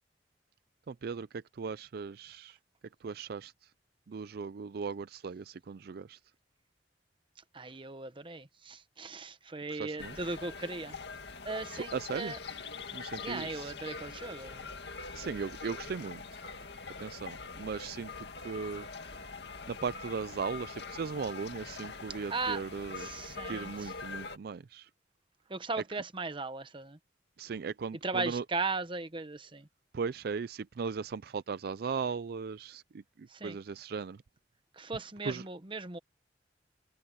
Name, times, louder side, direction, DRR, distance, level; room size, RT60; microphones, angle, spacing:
voice 1, 0.9-2.6 3.0-3.5 4.1-6.2 9.7-10.2 11.8-12.3 12.9-13.7 15.1-16.2 17.0-18.9 19.7-23.1 23.5-24.9 27.4-28.4 29.9-32.8 33.2-34.2 35.2-35.4, right 5 dB, 60° right, 0.4 m, -37 dB
voice 2, 7.5-11.0 11.4-12.4 12.8-12.9 13.2-14.7 22.3-22.6 22.9-23.9 25.5-27.0 28.0-29.7 33.3-33.6 34.7-36.0, right 3 dB, 30° right, 1.1 m, -37 dB
sound 1, 10.0-24.4, left 4 dB, 65° left, 2.3 m, -43 dB
head